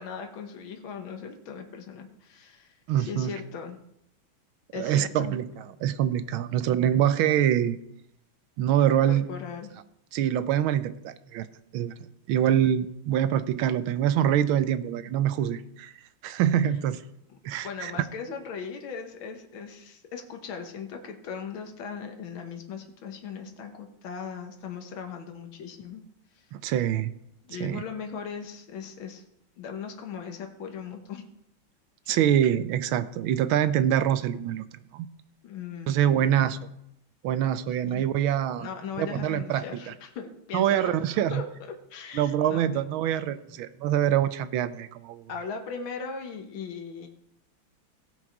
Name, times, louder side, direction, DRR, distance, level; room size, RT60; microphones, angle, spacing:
voice 1, 0.0-3.8 4.7-5.4 9.1-9.8 17.3-26.0 26.4-26.5 27.4-29.2 29.6-31.2 35.4-36.4 37.8-38.0 38.6-40.9 41.3-42.8 45.3-47.1, left 6 dB, 80° left, 4 dB, 2.0 m, -39 dB
voice 2, 2.9-3.3 4.8-7.8 8.6-9.3 10.1-11.5 11.7-11.9 12.3-15.9 16.2-17.0 17.4-17.9 26.5-27.1 27.5-27.8 32.1-34.6 34.9-35.1 35.9-36.6 37.2-38.7 39.0-39.9 40.5-41.4 42.1-45.3, right 10 dB, 90° right, 14 dB, 1.5 m, -25 dB
17.0 x 6.2 x 4.7 m, 0.78 s
omnidirectional pair, 2.2 m